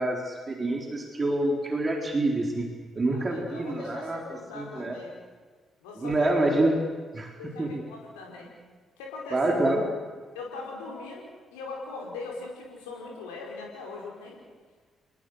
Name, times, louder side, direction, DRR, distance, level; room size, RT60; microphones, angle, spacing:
voice 1, 0.0-5.0 6.0-6.7 7.1-7.9 9.3-9.9, right 2 dB, 35° right, 1 dB, 4.3 m, -27 dB
voice 2, 3.3-5.1 5.8-6.3 7.4-8.5 9.0-9.4 10.3-14.4, left 3 dB, 80° left, -1 dB, 4.9 m, -40 dB
29.0 x 20.5 x 6.7 m, 1.5 s
figure-of-eight pair, 40°, 0 cm